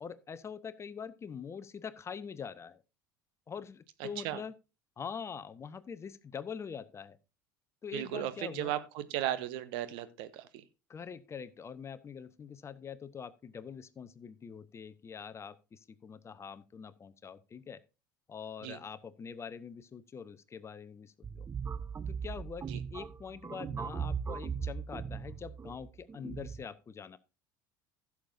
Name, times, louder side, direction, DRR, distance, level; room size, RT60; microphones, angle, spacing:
voice 1, 0.0-2.8 3.5-4.5 5.0-7.2 7.8-8.7 10.9-17.8 18.3-21.5 22.1-27.2, left 6 dB, 25° left, 0.7 m, -44 dB
voice 2, 4.0-4.4 7.9-10.6 18.6-18.8 22.7-22.8, right 12 dB, 55° right, 1.1 m, -36 dB
sound 1, 21.2-26.6, right 6 dB, 20° right, 0.6 m, -38 dB
16.0 x 7.1 x 2.6 m
figure-of-eight pair, 65°, 10 cm